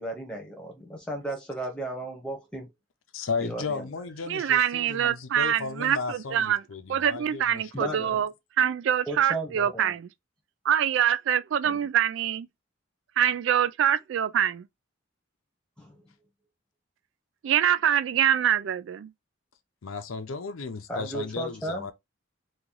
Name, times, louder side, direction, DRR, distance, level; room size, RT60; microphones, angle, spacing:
voice 1, 0.0-2.7 3.4-4.1 7.7-8.2 9.1-9.9 11.6-11.8 15.8-16.0 20.9-21.9, right 1 dB, 5° left, 1.0 m, -35 dB
voice 2, 3.1-8.2 19.8-21.9, left 4 dB, 85° left, 0.7 m, -35 dB
voice 3, 4.3-6.6 6.9-8.3 8.6-10.1 10.6-12.5 13.2-14.7 17.4-19.1, right 9 dB, 70° right, 0.3 m, -25 dB
3.0 x 2.5 x 3.8 m
head